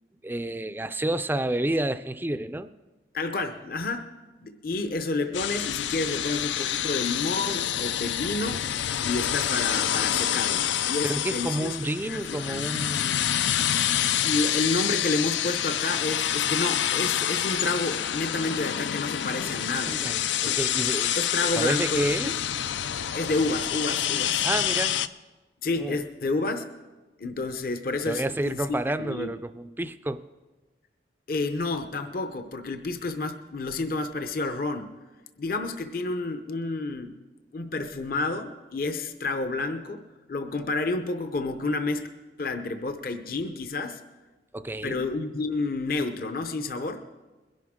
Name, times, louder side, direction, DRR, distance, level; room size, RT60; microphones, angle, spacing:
voice 1, 0.2-2.7 11.0-13.3 19.9-21.2 21.6-22.4 24.4-25.0 25.8-26.0 28.0-30.3 44.5-45.1, right 1 dB, 10° right, 12 dB, 0.4 m, -30 dB
voice 2, 3.1-4.1 4.4-8.6 9.0-10.6 10.9-11.8 12.0-12.7 14.2-20.0 20.4-20.6 21.2-22.3 23.1-24.4 25.6-26.7 27.2-29.3 31.3-34.9 35.4-37.1 37.5-40.0 40.3-42.1 42.4-44.0 44.8-47.0, left 3 dB, 55° left, 8 dB, 0.7 m, -30 dB
sound 1, 5.3-25.1, left 10 dB, 85° left, 0.4 m, -27 dB
22.0 x 11.0 x 3.7 m, 1.2 s
head